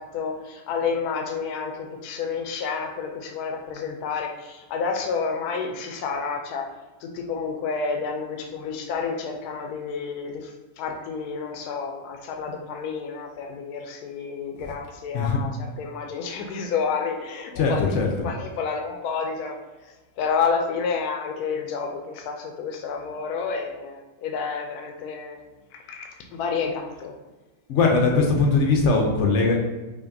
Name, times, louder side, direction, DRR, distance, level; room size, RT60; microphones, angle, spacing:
voice 1, 0.0-6.6 7.0-18.0 18.2-19.6 20.2-25.4 25.9-27.1, left 5 dB, 80° left, 2 dB, 1.1 m, -30 dB
voice 2, 17.6-18.1 27.7-29.6, left 4 dB, 65° left, 1 dB, 0.8 m, -20 dB
5.1 x 2.5 x 2.6 m, 1.1 s
omnidirectional pair, 1.6 m